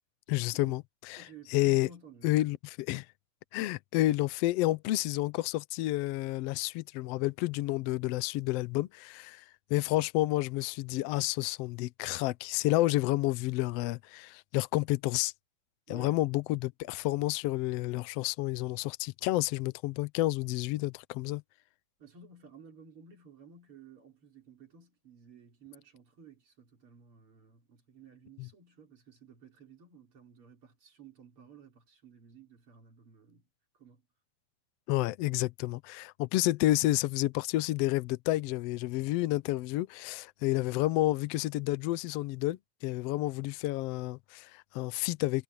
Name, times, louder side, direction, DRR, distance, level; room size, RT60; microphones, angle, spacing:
voice 1, 0.3-1.9 2.2-3.1 3.5-9.4 9.7-15.3 15.9-21.4 28.4-28.5 34.9-45.4, left 17 dB, 90° left, 1.3 m, -30 dB
voice 2, 1.2-2.3 15.9-16.2 22.0-33.4 33.7-34.0, right 5 dB, 40° right, 4.6 m, -54 dB
omnidirectional pair, 3.7 m